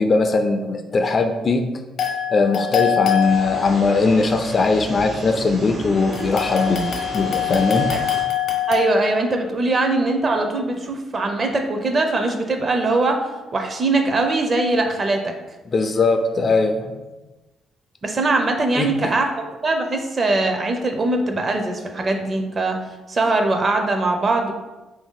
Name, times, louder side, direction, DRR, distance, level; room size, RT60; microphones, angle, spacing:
voice 1, 0.0-1.7 2.3-6.8 7.1-7.9 15.7-16.9 18.8-19.1, left 3 dB, 40° left, 6 dB, 0.3 m, -20 dB
sound 1, 2.0-4.0 6.1-8.9, left 11 dB, 65° left, 0.7 m, -24 dB
sound 2, 3.2-8.2, right 1 dB, 80° right, 0.8 m, -34 dB
voice 2, 8.7-13.2 13.5-15.3 18.0-22.8 23.1-24.5, right 2 dB, 40° right, 4 dB, 0.5 m, -21 dB
3.0 x 2.6 x 3.6 m, 1.1 s
cardioid pair, 90°, 0 cm